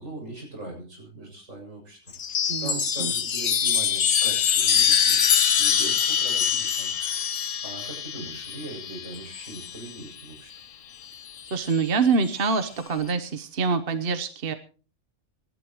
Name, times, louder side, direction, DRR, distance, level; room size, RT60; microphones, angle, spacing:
voice 1, 0.0-2.0 2.6-5.2 5.6-6.9 7.6-10.5, right 2 dB, 80° right, 1 dB, 7.8 m, -40 dB
Chime, 2.1-9.9 11.1-11.8, left 8 dB, 90° left, 1.5 m, -24 dB
voice 2, 2.5-3.1 11.5-14.5, right 4 dB, 50° right, 9 dB, 1.2 m, -25 dB
26.5 x 12.0 x 3.0 m, 0.37 s
omnidirectional pair, 1.3 m